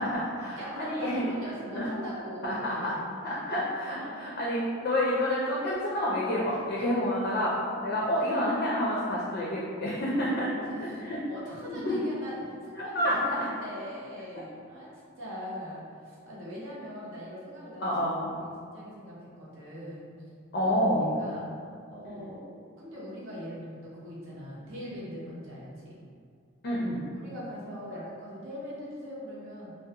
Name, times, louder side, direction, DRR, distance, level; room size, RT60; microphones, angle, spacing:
voice 1, 0.0-1.2 1.7-1.9 2.4-2.9 3.2-10.5 10.8-11.2 11.7-12.0 12.8-13.5 17.8-18.4 20.5-21.3 22.0-22.4 26.6-27.0, left 1 dB, 50° left, -5 dB, 0.4 m, -29 dB
voice 2, 0.5-3.0 4.0-4.2 6.5-7.0 7.9-8.2 8.9-9.0 10.3-14.9 15.2-17.9 18.6-20.1 20.5-20.7 21.2-21.5 21.9-22.4 22.8-26.0 27.1-29.8, equal, 70° right, -6 dB, 0.7 m, -41 dB
2.5 x 2.0 x 2.7 m, 2.2 s
head